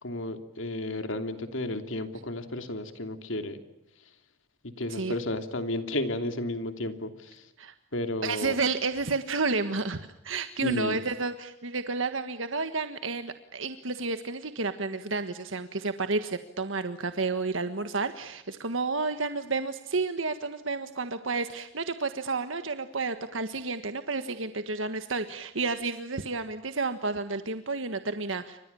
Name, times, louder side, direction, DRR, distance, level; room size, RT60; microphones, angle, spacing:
voice 1, 0.0-3.6 4.0-4.1 4.6-7.5 7.9-8.6 10.6-11.0, left 1 dB, 70° left, 8 dB, 3.0 m, -33 dB
voice 2, 8.2-10.0 10.2-28.6, right 3 dB, 75° right, 9 dB, 1.5 m, -31 dB
29.5 x 25.5 x 7.0 m, 0.85 s
head